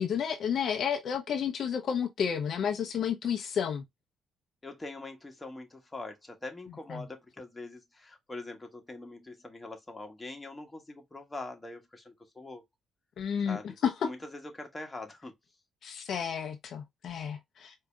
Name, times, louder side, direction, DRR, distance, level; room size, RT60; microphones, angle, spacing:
voice 1, 0.0-3.8 6.9-7.0 13.2-13.6 13.8-14.1 15.8-17.7, left 7 dB, 65° left, 0.7 m, -31 dB
voice 2, 4.6-12.6 13.5-13.8 14.0-15.3, left 2 dB, 15° left, 1.3 m, -43 dB
4.8 x 2.8 x 2.3 m
cardioid pair, 90°, 0 cm